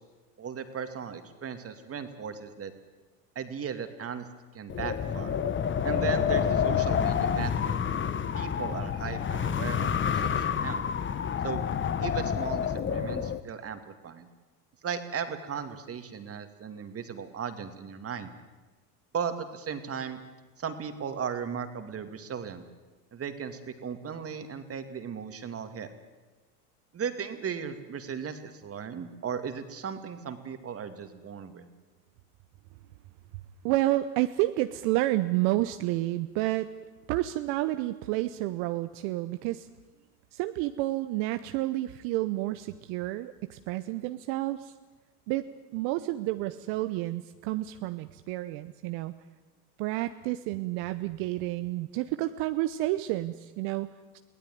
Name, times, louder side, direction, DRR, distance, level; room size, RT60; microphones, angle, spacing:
voice 1, 0.4-2.7 3.4-4.2 4.5-5.4 5.8-7.8 8.3-10.8 11.4-11.6 12.0-14.3 14.8-18.3 19.1-20.2 20.6-22.6 23.1-25.9 26.9-31.7, right 7 dB, 30° right, 9 dB, 2.5 m, -36 dB
Wind, 4.7-13.4, left 8 dB, 25° left, 1.2 m, -28 dB
voice 2, 33.6-36.7 37.1-39.7 40.3-44.7 45.3-45.4 45.7-49.1 49.8-54.2, right 16 dB, 55° right, 10 dB, 1.0 m, -30 dB
23.0 x 16.5 x 9.4 m, 1.2 s
hypercardioid pair, 95°, 46 cm